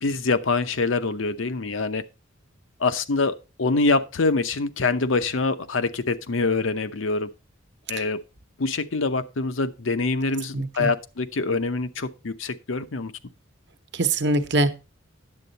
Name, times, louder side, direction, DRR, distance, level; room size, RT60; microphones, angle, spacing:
voice 1, 0.0-2.0 2.8-7.3 7.9-8.2 8.6-13.1, left 3 dB, 80° left, 0.8 m, -25 dB
voice 2, 10.5-10.9 13.9-14.7, right 2 dB, 60° right, 1.0 m, -23 dB
9.8 x 7.8 x 4.0 m
head